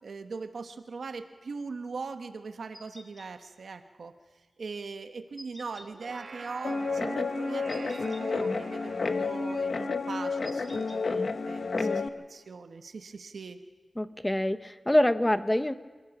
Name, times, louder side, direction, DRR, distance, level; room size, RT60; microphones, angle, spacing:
voice 1, 0.0-13.6, right 4 dB, 85° right, 7 dB, 1.1 m, -41 dB
sound 1, 2.7-3.3 5.4-5.9 7.7-8.2 10.4-11.0, equal, ahead, 2.3 m, -49 dB
sound 2, 5.8-11.3, right 3 dB, 65° right, 1.3 m, -46 dB
Guitar, 6.6-12.1, left 4 dB, 70° left, 0.9 m, -30 dB
voice 2, 11.7-12.1 14.0-15.7, left 1 dB, 15° left, 11 dB, 0.8 m, -26 dB
27.0 x 16.0 x 6.0 m, 1.3 s
wide cardioid pair, 75°, 0 cm